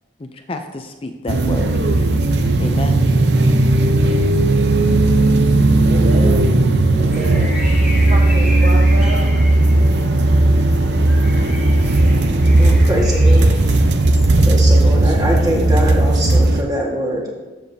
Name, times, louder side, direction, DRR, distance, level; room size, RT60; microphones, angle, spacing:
voice 1, 0.2-1.8 2.6-3.0, left 2 dB, 30° left, 6 dB, 0.5 m, -29 dB
sound 1, 1.3-16.6, right 2 dB, 65° right, 0.7 m, -15 dB
voice 2, 5.8-6.5 7.0-7.5 8.0-9.2, right 1 dB, 40° right, 0 dB, 1.5 m, -28 dB
sound 2, 7.1-14.3, equal, 5° right, 2.0 m, -33 dB
voice 3, 12.6-13.6 14.5-17.4, equal, 20° right, -2 dB, 1.7 m, -22 dB
12.5 x 7.3 x 2.8 m, 1.2 s
head